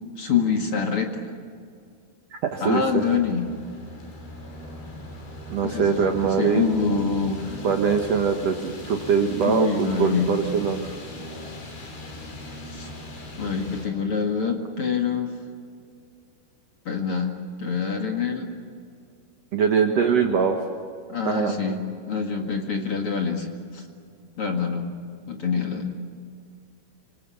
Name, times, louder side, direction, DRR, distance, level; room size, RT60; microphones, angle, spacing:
voice 1, 0.2-1.2 2.6-3.4 5.6-7.7 9.5-10.3 12.7-12.9 13.4-15.3 16.9-17.3 17.6-18.5 21.1-21.8 22.1-23.5 23.7-23.9 24.4-24.9 25.3-25.9, left 6 dB, 40° left, 3 dB, 2.2 m, -25 dB
voice 2, 2.3-3.2 5.5-6.6 7.6-10.9 19.5-20.6 21.2-21.5, right 6 dB, 65° right, 4 dB, 1.7 m, -22 dB
sound 1, 2.5-13.9, left 1 dB, 90° left, 7.1 m, -39 dB
28.0 x 25.5 x 7.1 m, 2.3 s
omnidirectional pair, 4.9 m